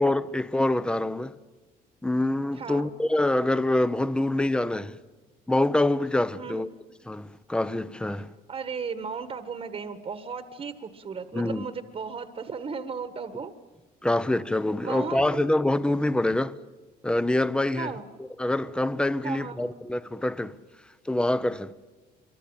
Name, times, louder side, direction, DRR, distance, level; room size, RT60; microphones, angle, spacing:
voice 1, 0.0-1.3 2.0-5.0 5.5-6.7 7.1-8.3 11.3-11.6 14.0-16.5 17.0-17.9 18.2-20.5 21.1-21.7, left 1 dB, 5° left, 0.9 m, -25 dB
voice 2, 2.5-2.9 6.3-6.6 8.5-13.5 14.8-15.5 17.8-18.0 19.2-19.7, right 5 dB, 35° right, 1.6 m, -35 dB
27.0 x 24.0 x 8.9 m
cardioid pair, 110°, 17 cm